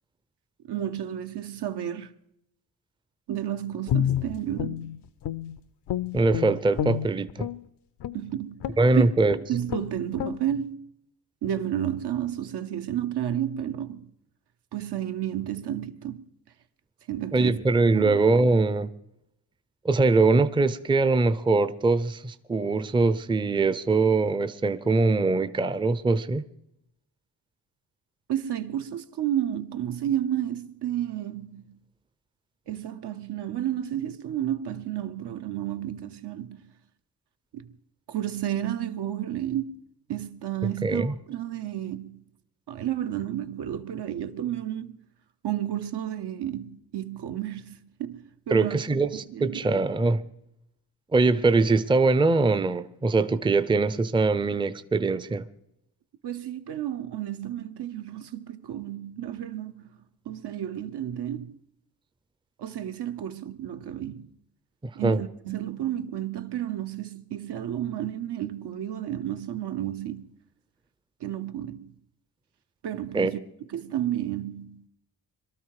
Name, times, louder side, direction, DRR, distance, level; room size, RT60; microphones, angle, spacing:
voice 1, 0.7-2.1 3.3-4.9 8.1-10.9 11.4-14.1 14.7-16.2 17.1-17.6 17.9-18.2 28.3-31.8 32.7-36.7 37.5-37.7 38.1-39.8 40.1-42.2 42.7-45.0 45.4-48.8 49.3-49.6 56.2-59.9 60.3-61.6 62.6-64.3 64.9-70.3 71.2-71.9 72.8-73.4 73.7-74.8, right 11 dB, 70° right, 1.0 m, -31 dB
Guitar, 3.9-5.6 5.9-7.6 8.0-8.2 8.6-8.9 9.3-9.4 9.7-9.9 10.2-10.4, left 10 dB, 75° left, 0.7 m, -29 dB
voice 2, 6.1-7.5 8.8-9.4 17.3-18.9 19.8-26.4 40.8-41.1 48.5-50.2 51.1-55.4 65.0-65.2 73.1-73.3, right 3 dB, 10° right, 0.6 m, -22 dB
22.5 x 13.0 x 4.8 m
cardioid pair, 100°, 42 cm